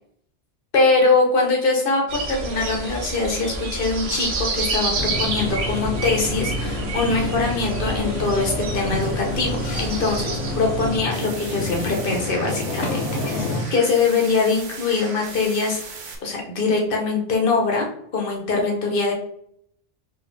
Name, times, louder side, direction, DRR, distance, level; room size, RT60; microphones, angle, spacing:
voice 1, 0.7-15.8 16.2-17.9 18.1-19.1, left 3 dB, 50° left, 0 dB, 1.2 m, -22 dB
sound 1, 2.1-11.0, right 3 dB, 60° right, 1.0 m, -29 dB
sound 2, 4.9-13.6, left 2 dB, 80° left, 1.1 m, -28 dB
sound 3, 11.0-16.1, right 4 dB, 90° right, 1.2 m, -37 dB
5.0 x 3.0 x 3.3 m, 0.70 s
omnidirectional pair, 1.2 m